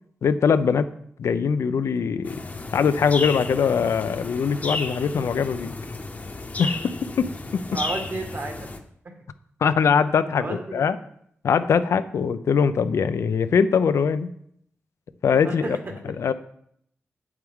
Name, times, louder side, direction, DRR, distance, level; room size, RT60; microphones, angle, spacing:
voice 1, 0.2-0.9 1.2-2.4 2.7-5.7 6.6-7.8 9.6-11.0 11.4-14.3 15.2-15.8 16.2-16.3, left 6 dB, 85° left, 12 dB, 0.5 m, -22 dB
sound 1, 2.3-8.8, left 3 dB, 35° left, 0.8 m, -33 dB
voice 2, 7.7-8.7 10.4-10.8 15.4-15.9, right 2 dB, 50° right, 3 dB, 1.6 m, -32 dB
8.1 x 7.9 x 3.6 m, 0.68 s
wide cardioid pair, 115°, 5 cm